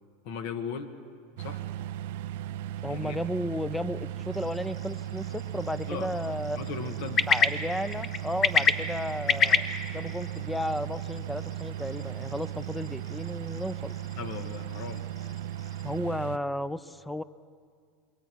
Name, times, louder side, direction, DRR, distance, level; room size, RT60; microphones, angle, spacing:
voice 1, 0.2-0.9 1.4-1.6 2.9-3.2 5.8-6.2 6.5-7.3 14.2-15.1, left 6 dB, 65° left, 8 dB, 1.7 m, -37 dB
sound 1, 1.4-16.4, right 12 dB, 70° right, 0.5 m, -36 dB
voice 2, 2.8-6.6 7.3-9.7 9.9-13.9 15.8-17.2, left 1 dB, 5° left, 16 dB, 0.6 m, -33 dB
sound 2, 4.3-16.0, left 6 dB, 35° left, 1.1 m, -32 dB
27.0 x 22.0 x 4.6 m, 2.2 s
supercardioid pair, 110°, 0 cm